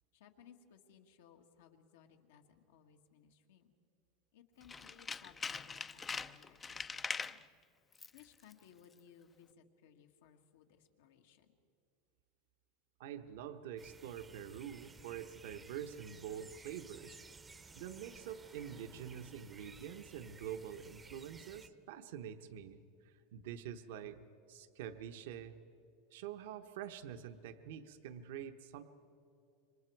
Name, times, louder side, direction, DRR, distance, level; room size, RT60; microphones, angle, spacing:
voice 1, 0.1-3.7 4.3-7.5 8.1-11.5, left 8 dB, 90° left, 3 dB, 1.9 m, -62 dB
Tools, 4.6-7.4 7.9-8.2 8.5-8.6, left 5 dB, 15° left, 0.4 m, -42 dB
voice 2, 13.0-17.2 17.7-24.2 24.5-25.6 26.1-28.8, right 9 dB, 75° right, 8 dB, 1.0 m, -46 dB
sound 1, 13.8-21.7, right 4 dB, 15° right, 0.7 m, -56 dB
27.0 x 24.0 x 4.7 m, 2.7 s
supercardioid pair, 150°, 0 cm